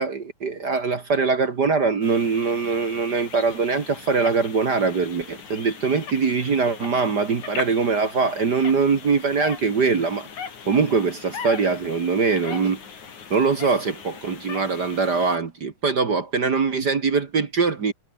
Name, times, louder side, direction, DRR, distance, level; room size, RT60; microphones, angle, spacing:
voice 1, 0.0-12.8 13.3-17.9, right 5 dB, 45° right, 1.3 m, -22 dB
sound 1, 2.0-15.4, left 6 dB, 50° left, 4.4 m, -39 dB
omnidirectional pair, 4.4 m